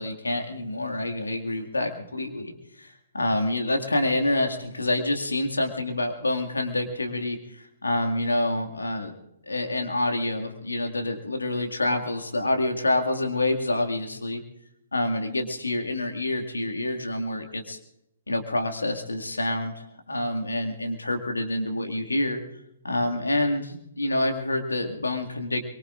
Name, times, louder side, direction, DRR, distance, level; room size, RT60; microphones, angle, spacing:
voice 1, 0.0-9.1 9.4-14.4 14.9-17.8 18.3-22.4 22.8-25.6, left 1 dB, 75° left, 4 dB, 2.1 m, -27 dB
23.5 x 23.0 x 2.5 m, 0.83 s
figure-of-eight pair, 120°, 0 cm